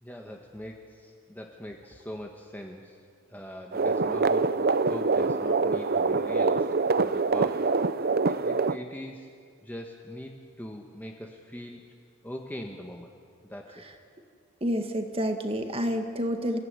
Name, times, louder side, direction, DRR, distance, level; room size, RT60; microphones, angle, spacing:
voice 1, 0.0-3.0 3.3-6.7 7.0-7.7 8.3-9.3 9.6-11.8 12.2-13.1 13.4-13.8, equal, 10° left, 1 dB, 1.5 m, -42 dB
sound 1, 3.7-8.8, right 4 dB, 45° right, 0.6 m, -25 dB
voice 2, 14.6-16.6, equal, 25° right, 6 dB, 2.0 m, -29 dB
29.0 x 16.5 x 9.8 m, 2.2 s
head